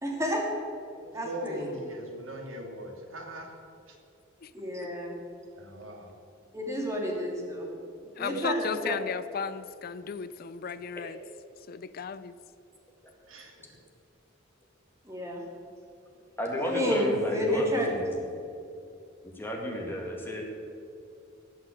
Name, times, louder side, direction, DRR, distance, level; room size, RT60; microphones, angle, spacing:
voice 1, 0.0-0.5 1.1-1.6 4.5-5.1 6.5-7.7 8.2-9.0 15.1-15.4 16.6-17.9, equal, 15° right, 0 dB, 2.4 m, -30 dB
voice 2, 1.2-3.5 3.9-4.0 5.5-6.2 13.3-13.8, right 1 dB, 80° right, 1 dB, 2.4 m, -40 dB
voice 3, 8.2-11.2 11.7-12.4, left 6 dB, 50° left, 14 dB, 0.4 m, -35 dB
voice 4, 16.4-18.1 19.4-20.4, equal, 10° left, -1 dB, 2.1 m, -32 dB
17.0 x 5.8 x 8.5 m, 2.6 s
head